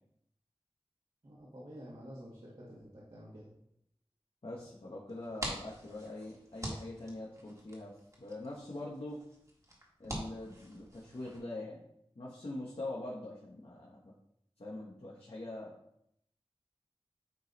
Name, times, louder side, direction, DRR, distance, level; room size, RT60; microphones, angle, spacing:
voice 1, 1.2-3.5, equal, 60° right, -7 dB, 1.8 m, -50 dB
voice 2, 4.4-7.9 8.2-9.2 10.0-11.8 12.1-14.1 14.6-15.7, left 2 dB, 70° left, -6 dB, 1.3 m, -43 dB
sound 1, 5.1-11.4, equal, 30° right, 1.8 m, -46 dB
9.5 x 3.3 x 4.0 m, 0.75 s
wide cardioid pair, 50°, 10 cm